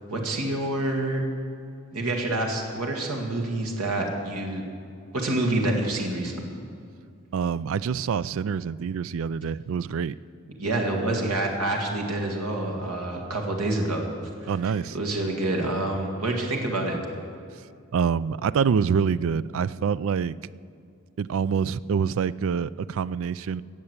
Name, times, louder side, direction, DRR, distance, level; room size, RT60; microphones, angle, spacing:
voice 1, 0.1-1.2 1.9-4.6 5.1-6.5 10.6-14.1 14.4-17.1, right 2 dB, 85° right, 1 dB, 1.9 m, -27 dB
voice 2, 7.3-10.1 14.5-15.0 17.9-20.4 21.2-23.6, right 6 dB, 60° right, 18 dB, 0.3 m, -26 dB
17.5 x 7.0 x 8.1 m, 2.4 s
head